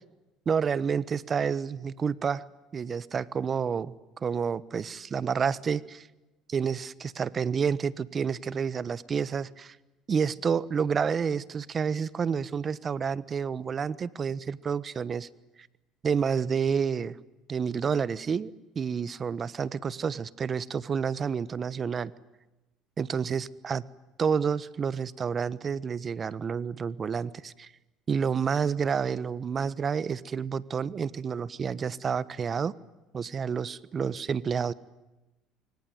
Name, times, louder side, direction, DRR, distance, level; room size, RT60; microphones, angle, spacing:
voice 1, 0.5-2.5 2.7-3.9 4.2-6.1 6.5-9.8 10.1-15.3 16.0-17.2 17.5-22.1 23.0-23.8 24.2-27.7 28.1-32.7 33.1-34.7, right 6 dB, 35° right, 20 dB, 1.2 m, -29 dB
25.5 x 24.0 x 9.2 m, 1.1 s
supercardioid pair, 80°, 0 cm